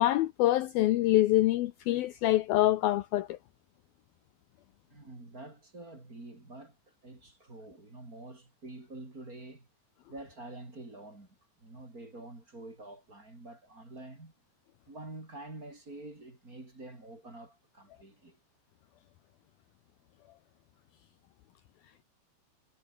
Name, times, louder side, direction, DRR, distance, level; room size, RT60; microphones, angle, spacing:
voice 1, 0.0-3.4, left 15 dB, 85° left, 2.1 m, -25 dB
voice 2, 4.9-9.7 10.1-11.3 11.6-14.3 14.9-18.4, right 2 dB, 20° right, 4.5 m, -47 dB
omnidirectional pair, 5.5 m